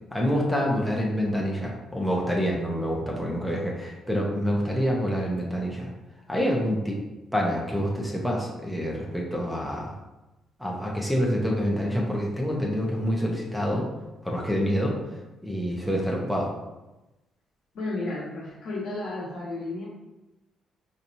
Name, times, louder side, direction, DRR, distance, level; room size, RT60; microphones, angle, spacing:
voice 1, 0.1-5.9 6.3-7.0 7.3-9.9 10.6-13.9 14.2-14.9 15.4-16.5, equal, ahead, -3 dB, 0.8 m, -27 dB
voice 2, 17.7-19.9, left 2 dB, 75° left, -5 dB, 1.3 m, -32 dB
4.1 x 2.9 x 2.6 m, 1.0 s
cardioid pair, 90°, 0 cm